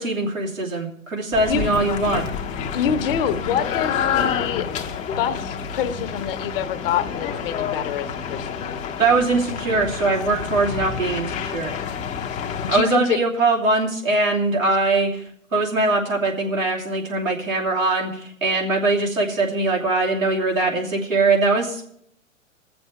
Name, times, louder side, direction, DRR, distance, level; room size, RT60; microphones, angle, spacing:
voice 1, 0.0-2.3 9.0-11.7 12.7-15.2 15.5-21.9, right 3 dB, 90° right, -3 dB, 3.0 m, -21 dB
sound 1, 1.3-12.8, left 7 dB, 20° left, 0.7 m, -28 dB
voice 2, 2.7-4.9 5.2-8.7 12.6-13.2, left 8 dB, 45° left, 9 dB, 1.0 m, -26 dB
20.0 x 7.1 x 4.8 m, 0.69 s
figure-of-eight pair, 110°, 39 cm